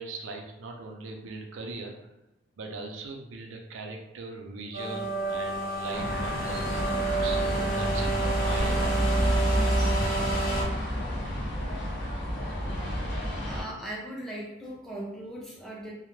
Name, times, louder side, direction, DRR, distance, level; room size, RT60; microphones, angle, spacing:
voice 1, 0.0-1.9 2.6-8.9, right 3 dB, 80° right, 2 dB, 0.4 m, -40 dB
sound 1, 4.7-10.6, right 3 dB, 45° left, 0.7 m, -30 dB
sound 2, 5.9-13.6, equal, 20° left, 1.0 m, -29 dB
voice 2, 13.3-15.9, right 1 dB, ahead, -5 dB, 0.5 m, -39 dB
2.3 x 2.0 x 3.0 m, 0.91 s
head